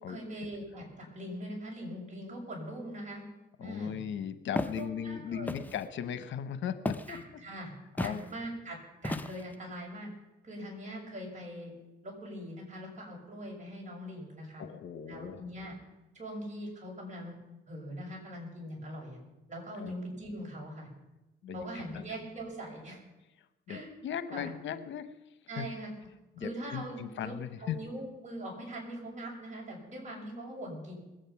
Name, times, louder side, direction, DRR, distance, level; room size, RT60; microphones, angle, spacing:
voice 1, 0.1-3.2 3.6-4.0 4.6-5.5 7.1-7.7 8.0-10.1 10.4-11.7 12.0-14.6 15.1-15.8 16.1-17.4 17.7-19.2 19.5-20.9 21.5-23.0 23.7-23.9 24.3-24.5 25.5-25.9 26.4-31.0, equal, 40° right, -2 dB, 6.5 m, -42 dB
voice 2, 3.6-7.2 8.0-8.2 14.6-15.4 19.8-19.9 21.4-21.6 21.9-22.0 23.7-25.1 25.6-25.7 26.4-27.7, left 9 dB, 70° left, 12 dB, 0.9 m, -37 dB
Walk footsteps, 4.5-4.8 5.5-5.8 6.9-7.2 8.0-8.2 9.0-9.5, left 1 dB, 10° left, 0.8 m, -34 dB
20.5 x 9.0 x 5.8 m, 1.0 s
cardioid pair, 90°, 20 cm